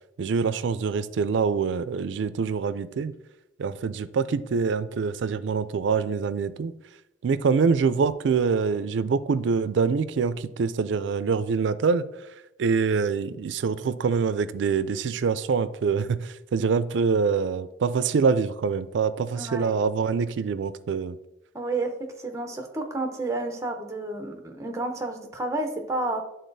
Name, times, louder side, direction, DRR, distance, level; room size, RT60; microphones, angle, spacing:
voice 1, 0.2-3.1 3.6-6.7 7.2-12.0 12.6-21.2, right 5 dB, 85° right, 0.4 m, -25 dB
voice 2, 19.3-19.8 21.5-26.2, right 2 dB, 15° right, 0.7 m, -31 dB
10.0 x 3.8 x 2.6 m
head